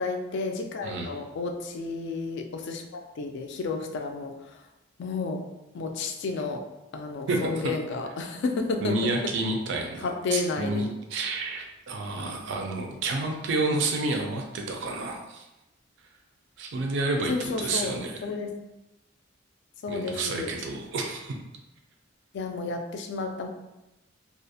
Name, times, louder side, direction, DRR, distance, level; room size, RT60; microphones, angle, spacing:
voice 1, 0.0-4.6 5.0-5.4 5.7-6.6 6.9-9.0 9.2-9.3 10.0-10.9 13.5-13.8 17.3-17.9 18.2-18.5 19.8-20.5 22.3-23.5, left 3 dB, 60° left, 4 dB, 0.3 m, -31 dB
voice 2, 7.3-7.7 8.8-15.5 16.6-18.1 19.9-21.4, right 2 dB, 65° right, 2 dB, 0.4 m, -30 dB
2.4 x 2.0 x 2.6 m, 0.95 s
head